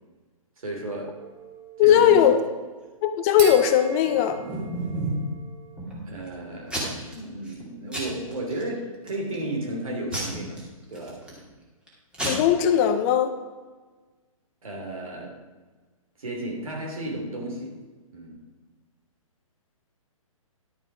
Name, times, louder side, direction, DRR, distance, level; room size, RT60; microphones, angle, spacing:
voice 1, 0.6-1.1 1.8-2.3 6.1-10.6 10.9-11.2 14.6-15.3 16.2-17.8 18.1-18.4, right 1 dB, 70° right, 0 dB, 3.0 m, -33 dB
sound 1, 1.2-6.0, right 6 dB, 25° right, 2.2 m, -41 dB
voice 2, 1.8-2.4 3.0-4.4 12.2-13.3, left 9 dB, 25° left, 9 dB, 0.7 m, -19 dB
Packing tape duct tape / Tearing, 3.9-5.3 5.8-6.3 6.7-7.1 7.5-7.6 7.9-8.6 9.1-9.4 10.1-11.4 11.9-12.0 12.1-12.3, right 1 dB, 5° right, 2.3 m, -31 dB
11.5 x 6.9 x 4.9 m, 1.3 s
figure-of-eight pair, 130°, 18 cm